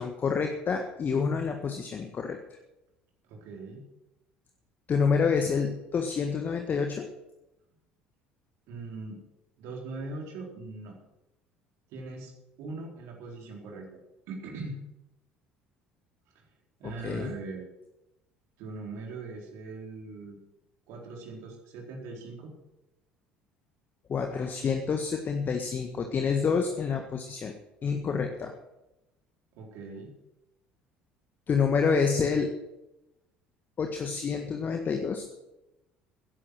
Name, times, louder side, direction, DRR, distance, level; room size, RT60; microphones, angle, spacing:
voice 1, 0.0-2.4 4.9-7.0 17.0-17.3 24.1-27.5 27.8-28.5 31.5-32.5 33.8-35.2, left 5 dB, 35° left, 4 dB, 1.6 m, -28 dB
voice 2, 3.3-3.8 8.7-9.2 9.6-11.0 11.9-12.3 12.6-13.9 14.3-14.8 16.3-16.4 16.8-17.6 18.6-20.4 20.9-22.5 29.5-30.1, right 3 dB, 60° right, 0 dB, 4.2 m, -40 dB
14.0 x 11.0 x 6.6 m, 0.93 s
figure-of-eight pair, 60°, 5 cm